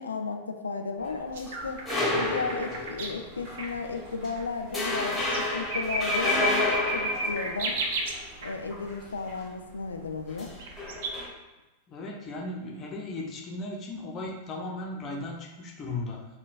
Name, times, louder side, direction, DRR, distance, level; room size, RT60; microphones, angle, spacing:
voice 1, 0.0-1.8 2.1-7.8 8.4-10.5, left 4 dB, 75° left, 5 dB, 0.4 m, -34 dB
sound 1, 1.0-3.3 3.7-3.9 4.3-4.4 4.7-8.2 10.3-11.3, left 2 dB, 10° left, 1.0 m, -30 dB
sound 2, 1.3-3.2 3.6-3.7 4.3-4.4 5.1-8.5 10.6-11.1, right 1 dB, 55° right, 0.5 m, -31 dB
sound 3, 1.6-9.5, equal, 30° right, 1.4 m, -49 dB
voice 2, 11.9-16.3, left 2 dB, 30° left, -1 dB, 0.6 m, -36 dB
5.6 x 2.2 x 2.5 m, 1.1 s
figure-of-eight pair, 90°, 0 cm